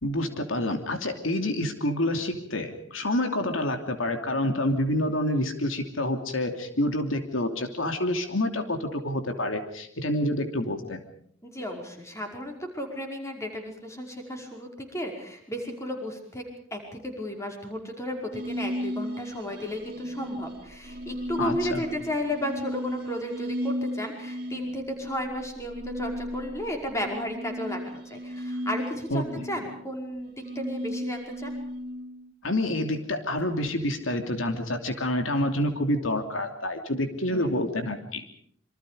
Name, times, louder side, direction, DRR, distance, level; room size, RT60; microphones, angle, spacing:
voice 1, 0.0-11.0 21.4-21.8 29.1-29.2 32.4-38.2, left 1 dB, 85° left, 6 dB, 2.9 m, -28 dB
voice 2, 11.4-16.4 16.7-31.5 37.0-37.6, left 1 dB, 15° left, 2 dB, 5.2 m, -34 dB
sound 1, 18.3-32.3, equal, 45° right, 2.8 m, -35 dB
27.0 x 25.0 x 5.1 m, 0.64 s
head